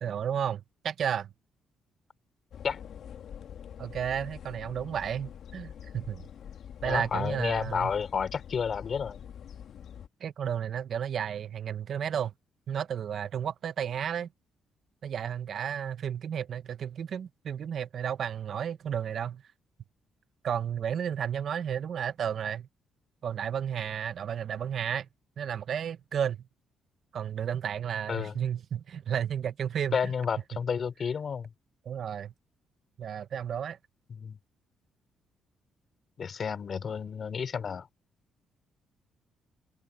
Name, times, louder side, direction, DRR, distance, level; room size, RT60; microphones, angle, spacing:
voice 1, 0.0-1.3 3.8-6.2 6.8-7.9 10.2-12.3 12.7-14.3 15.0-19.4 20.4-22.7 23.2-25.1 25.4-26.4 27.1-30.0 31.8-32.3 33.0-33.8, right 8 dB, 60° right, 0.8 m, -32 dB
sound 1, 2.5-10.1, left 8 dB, 65° left, 1.6 m, -45 dB
voice 2, 6.8-9.2 28.1-28.3 29.9-31.5 34.1-34.4 36.2-37.9, left 6 dB, 50° left, 3.2 m, -31 dB
cardioid pair, 90°, 0 cm